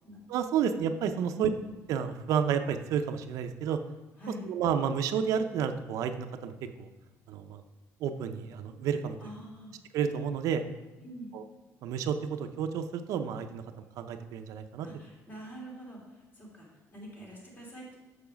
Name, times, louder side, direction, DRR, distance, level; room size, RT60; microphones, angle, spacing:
voice 1, 0.3-1.5 1.9-3.8 4.5-6.5 6.8-6.9 7.3-7.6 8.0-9.2 9.9-10.6 11.3-11.4 11.8-14.9, right 7 dB, 75° right, 8 dB, 0.6 m, -30 dB
voice 2, 4.2-4.5 9.2-9.7 11.0-11.3 14.8-18.0, equal, 35° left, -2 dB, 3.1 m, -45 dB
7.0 x 6.5 x 5.1 m, 1.2 s
cardioid pair, 135°, 6 cm